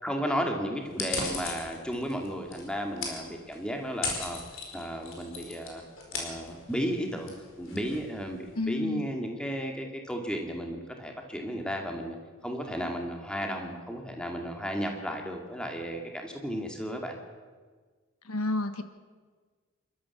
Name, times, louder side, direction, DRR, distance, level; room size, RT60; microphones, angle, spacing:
voice 1, 0.0-4.4 4.7-5.8 6.1-12.2 12.4-17.2, equal, 5° left, 2 dB, 2.3 m, -34 dB
sound 1, 0.9-8.6, left 4 dB, 60° left, 4.7 m, -39 dB
voice 2, 8.5-9.1 18.2-18.8, left 2 dB, 90° left, 9 dB, 1.4 m, -30 dB
27.5 x 13.0 x 7.2 m, 1.5 s
head